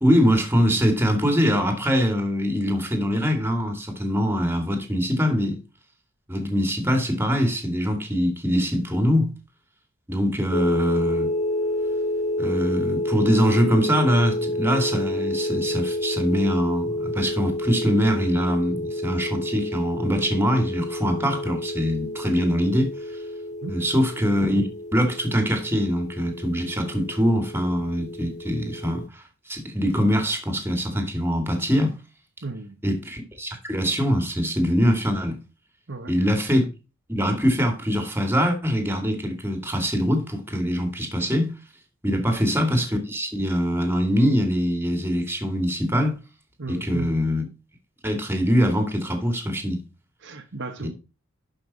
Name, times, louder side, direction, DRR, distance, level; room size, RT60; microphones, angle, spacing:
voice 1, 0.0-5.6 6.3-9.3 10.1-11.3 12.4-22.9 23.7-31.9 32.8-35.4 36.1-36.6 37.1-41.6 42.0-46.2 46.7-47.5 48.0-49.8 50.8-50.9, equal, 10° right, 2.4 m, -23 dB
sound 1, 10.5-29.1, left 1 dB, 35° left, 0.5 m, -29 dB
voice 2, 32.4-32.8 35.9-36.2 36.5-36.6 42.1-42.4 46.6-47.1 50.2-50.9, right 3 dB, 60° right, 1.4 m, -35 dB
11.5 x 5.8 x 4.1 m
head